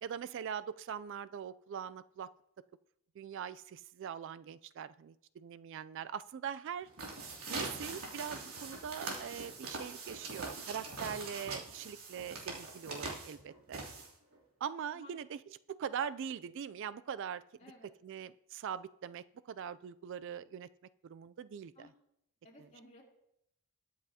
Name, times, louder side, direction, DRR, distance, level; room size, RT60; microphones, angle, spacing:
voice 1, 0.0-2.3 3.2-6.9 7.5-13.8 14.6-15.4 15.7-17.4 18.0-20.7 21.0-21.9, right 8 dB, 55° right, 15 dB, 0.3 m, -42 dB
sound 1, 6.8-14.4, right 3 dB, 80° right, 2.9 m, -42 dB
voice 2, 17.6-17.9 21.7-21.9 22.4-23.0, left 1 dB, 30° left, -4 dB, 3.0 m, -56 dB
22.0 x 7.6 x 2.8 m, 0.78 s
head